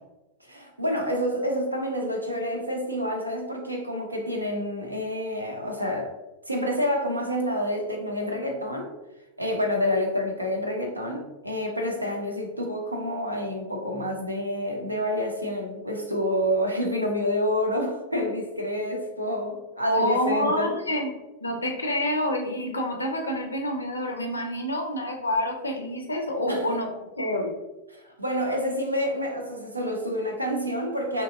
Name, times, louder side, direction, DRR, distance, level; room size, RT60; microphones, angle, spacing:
voice 1, 0.4-6.1 6.5-8.9 9.4-20.7 26.5-26.6 27.9-31.2, equal, 85° right, 2 dB, 0.5 m, -28 dB
voice 2, 19.8-21.1 21.4-26.9 27.2-27.5, left 1 dB, 80° left, 3 dB, 0.5 m, -27 dB
3.3 x 2.8 x 2.4 m, 1.1 s
figure-of-eight pair, 90°, 0 cm